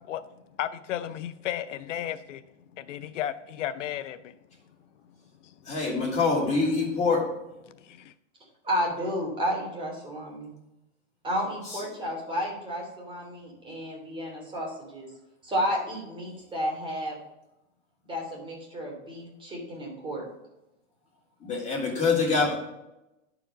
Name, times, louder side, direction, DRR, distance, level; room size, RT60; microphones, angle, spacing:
voice 1, 0.6-2.4 2.8-4.3 7.8-8.1, left 11 dB, 80° left, 12 dB, 0.6 m, -33 dB
voice 2, 5.7-7.2 21.4-22.6, left 4 dB, 20° left, -4 dB, 3.4 m, -25 dB
voice 3, 8.6-10.5 11.2-15.1 15.4-17.2 18.0-20.3, equal, 15° right, -1 dB, 2.9 m, -32 dB
11.0 x 4.9 x 5.1 m, 0.93 s
hypercardioid pair, 140°, 36 cm